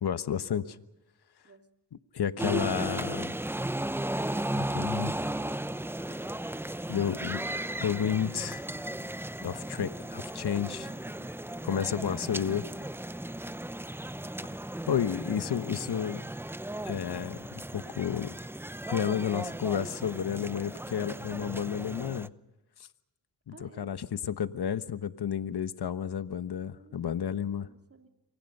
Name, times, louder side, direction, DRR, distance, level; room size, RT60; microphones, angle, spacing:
voice 1, 0.0-0.6 2.1-3.3 4.5-5.1 6.9-7.4 7.8-8.6 9.4-10.9 11.6-12.6 14.9-16.2 16.8-18.3 18.9-22.3 23.5-27.7, left 8 dB, 70° left, 11 dB, 1.2 m, -31 dB
sound 1, 2.4-22.3, right 1 dB, 5° right, 0.7 m, -36 dB
voice 2, 10.8-11.7 23.5-23.9 26.6-27.3 27.6-28.1, right 3 dB, 35° right, 4 dB, 3.0 m, -56 dB
29.0 x 24.0 x 5.5 m, 0.99 s
cardioid pair, 65°, 40 cm